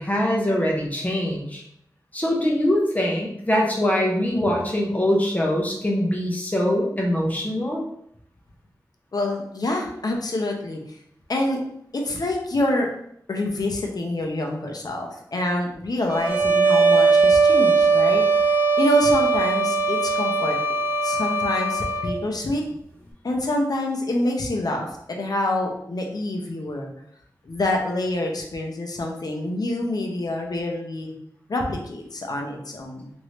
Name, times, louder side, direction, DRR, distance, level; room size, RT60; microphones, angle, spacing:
voice 1, 0.0-1.6 2.1-7.8, left 1 dB, 20° left, -1 dB, 0.8 m, -23 dB
voice 2, 9.1-10.8 11.3-11.6 11.9-12.9 13.3-20.6 21.0-22.6 23.2-26.9 27.5-31.1 31.5-33.1, left 1 dB, 60° left, 1 dB, 0.6 m, -26 dB
sound 1, 16.1-22.1, right 4 dB, 25° right, 0.6 m, -19 dB
3.0 x 2.6 x 3.2 m, 0.72 s
wide cardioid pair, 95°, 7 cm